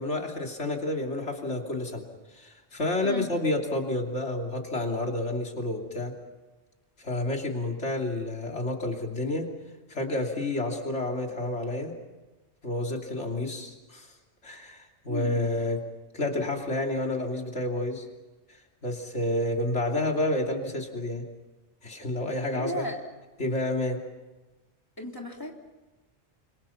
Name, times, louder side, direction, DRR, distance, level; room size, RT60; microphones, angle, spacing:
voice 1, 0.0-2.1 2.3-6.1 7.0-9.5 9.9-11.9 12.6-14.1 14.4-15.8 16.1-18.1 18.8-21.2 21.8-22.9 23.4-24.0, left 2 dB, 90° left, 2 dB, 3.4 m, -29 dB
voice 2, 15.1-15.5 22.5-23.0 25.0-25.5, left 1 dB, 20° left, 0 dB, 3.7 m, -35 dB
29.0 x 27.0 x 5.8 m, 1.2 s
omnidirectional pair, 1.1 m